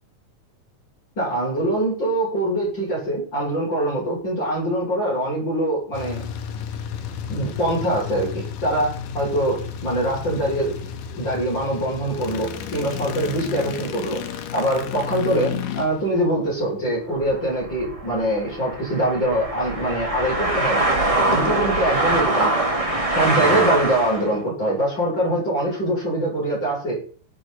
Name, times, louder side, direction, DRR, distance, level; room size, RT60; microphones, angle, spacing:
voice 1, 1.2-6.3 7.3-10.8 11.2-20.9 21.3-22.6 23.1-27.0, right 1 dB, 30° left, -5 dB, 7.1 m, -23 dB
sound 1, 5.9-17.1, left 8 dB, 75° left, 2.7 m, -32 dB
sound 2, 17.2-24.3, right 2 dB, 15° right, 1.4 m, -23 dB
18.0 x 6.7 x 4.2 m, 0.42 s
omnidirectional pair, 3.8 m